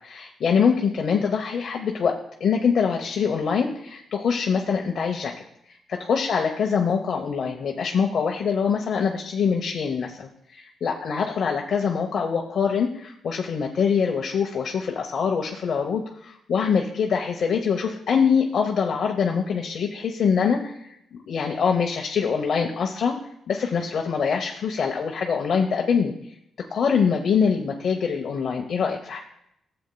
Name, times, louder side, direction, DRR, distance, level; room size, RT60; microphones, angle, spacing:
voice 1, 0.0-5.3 5.7-23.2 23.5-26.1 26.7-29.2, left 6 dB, 55° left, 1 dB, 0.8 m, -24 dB
13.5 x 7.9 x 2.3 m, 0.76 s
cardioid pair, 130°, 0 cm